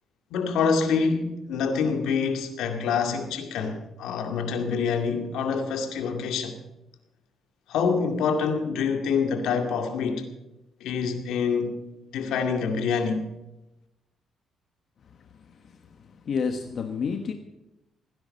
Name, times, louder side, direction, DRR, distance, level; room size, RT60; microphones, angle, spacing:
voice 1, 0.3-6.6 7.7-10.2 10.8-11.7 12.1-13.2, left 5 dB, 85° left, 2.2 m, -26 dB
voice 2, 16.2-17.3, left 5 dB, 55° left, 1.3 m, -29 dB
17.5 x 10.5 x 6.6 m
cardioid pair, 90°, 0 cm